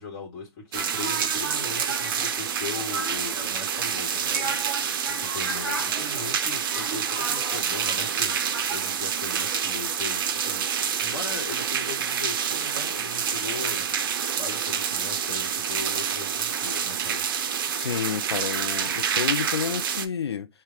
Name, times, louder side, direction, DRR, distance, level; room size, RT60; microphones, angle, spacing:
voice 1, 0.0-8.4 8.7-13.9 14.4-17.2, left 4 dB, 35° left, 1.3 m, -39 dB
sound 1, 0.7-9.9, right 3 dB, 35° right, 1.3 m, -37 dB
sound 2, 0.7-20.1, right 8 dB, 55° right, 0.4 m, -28 dB
Applause, 3.3-15.1, right 3 dB, 10° right, 0.9 m, -50 dB
voice 2, 17.8-20.5, left 7 dB, 75° left, 0.5 m, -30 dB
3.3 x 2.2 x 3.5 m
hypercardioid pair, 130°, 14 cm